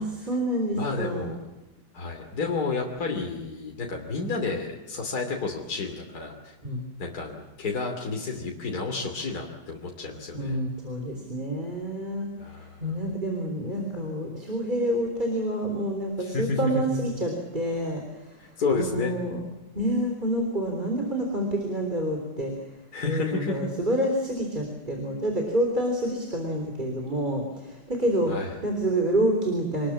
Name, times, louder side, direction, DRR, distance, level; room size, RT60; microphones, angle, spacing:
voice 1, 0.0-1.3 6.6-6.9 10.3-12.3 12.6-18.4 18.7-19.4 19.7-22.5 23.0-28.3 28.6-29.9, right 1 dB, 25° right, 2 dB, 3.8 m, -28 dB
voice 2, 0.8-1.4 1.9-6.5 7.0-10.6 12.4-13.1 16.2-17.1 18.4-19.1 22.9-23.7 28.3-28.6, left 3 dB, 60° left, 1 dB, 3.5 m, -31 dB
26.5 x 20.5 x 7.5 m, 1.0 s
omnidirectional pair, 1.8 m